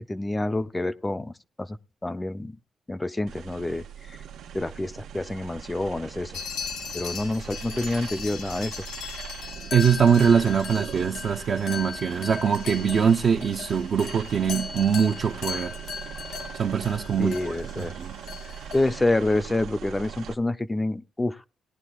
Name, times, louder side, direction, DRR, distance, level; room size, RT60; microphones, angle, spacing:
voice 1, 0.0-1.3 1.6-2.6 2.9-4.2 4.5-6.4 6.9-8.8 17.2-17.9 18.7-21.4, left 2 dB, 15° left, 0.5 m, -28 dB
sound 1, 3.3-20.3, right 9 dB, 85° right, 0.9 m, -41 dB
sound 2, 6.3-19.0, left 6 dB, 85° left, 1.9 m, -38 dB
voice 2, 9.7-15.7 16.5-17.4 17.8-18.1, right 7 dB, 55° right, 0.6 m, -22 dB
18.0 x 11.0 x 2.3 m
cardioid pair, 110°, 0 cm